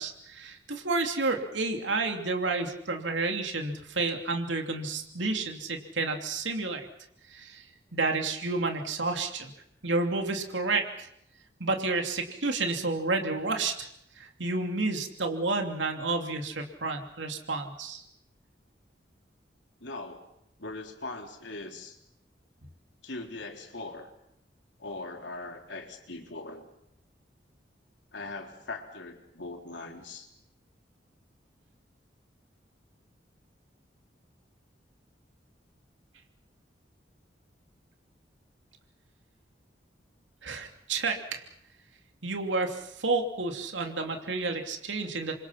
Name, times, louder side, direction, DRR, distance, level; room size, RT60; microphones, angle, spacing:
voice 1, 0.0-6.8 7.3-7.6 7.9-9.5 9.8-11.1 11.6-13.9 14.2-18.0 40.4-41.4 42.2-45.3, right 3 dB, 85° right, 4 dB, 2.9 m, -30 dB
voice 2, 19.8-20.2 20.6-22.0 23.0-24.1 24.8-26.7 28.1-30.3, left 2 dB, 80° left, 3 dB, 3.8 m, -40 dB
28.5 x 24.5 x 5.9 m, 0.75 s
head